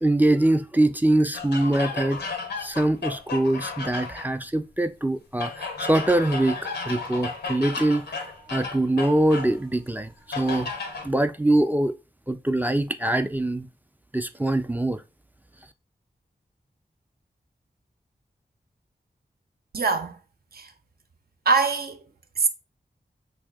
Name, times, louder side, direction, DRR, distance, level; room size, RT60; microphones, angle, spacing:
voice 1, 0.0-2.2 2.6-10.7 11.0-11.9 12.3-13.7 14.1-15.0, right 1 dB, 10° right, 0.3 m, -23 dB
sound 1, 1.3-4.3 5.4-9.6 10.3-11.1, left 4 dB, 90° left, 0.7 m, -33 dB
voice 2, 19.7-20.2 20.5-20.7 21.5-22.0 22.4-22.5, right 4 dB, 65° right, 0.6 m, -23 dB
3.2 x 2.7 x 3.4 m
cardioid pair, 50°, 17 cm